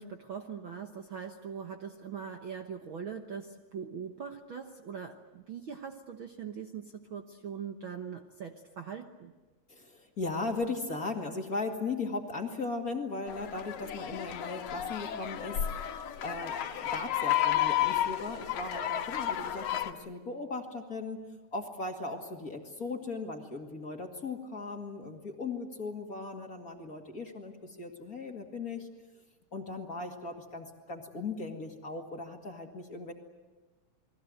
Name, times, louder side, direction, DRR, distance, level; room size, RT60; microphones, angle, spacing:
voice 1, 0.0-9.3, right 7 dB, 55° right, 5 dB, 1.6 m, -41 dB
voice 2, 9.7-15.6 16.2-21.2 21.5-28.9 29.5-33.1, left 3 dB, 30° left, 3 dB, 2.3 m, -38 dB
sound 1, 13.3-19.9, left 12 dB, 75° left, 2.7 m, -32 dB
29.5 x 21.5 x 8.0 m, 1.2 s
omnidirectional pair, 3.4 m